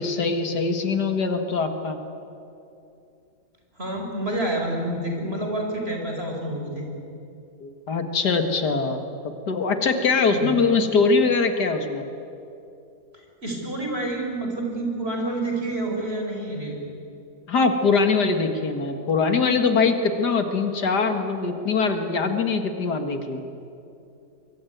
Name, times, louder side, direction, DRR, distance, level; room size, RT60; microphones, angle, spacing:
voice 1, 0.0-2.0 7.6-9.0 9.5-12.0 17.5-23.4, left 4 dB, 85° left, 6 dB, 2.4 m, -22 dB
voice 2, 3.8-6.9 10.3-10.5 13.1-16.8, right 1 dB, 35° right, 1 dB, 5.4 m, -28 dB
24.5 x 23.0 x 9.4 m, 2.7 s
omnidirectional pair, 1.7 m